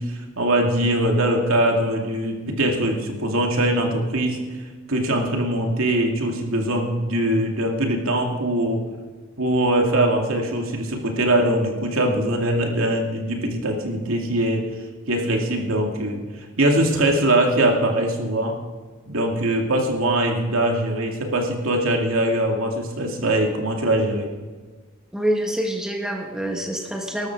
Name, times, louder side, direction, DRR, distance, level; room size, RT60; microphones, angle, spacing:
voice 1, 0.0-4.4 4.9-8.8 9.4-14.7 15.1-16.2 16.6-18.5 19.1-24.3, right 1 dB, 70° right, 1 dB, 2.5 m, -22 dB
voice 2, 25.1-27.3, right 1 dB, 5° right, 1 dB, 1.5 m, -26 dB
19.5 x 13.0 x 4.7 m, 1.4 s
head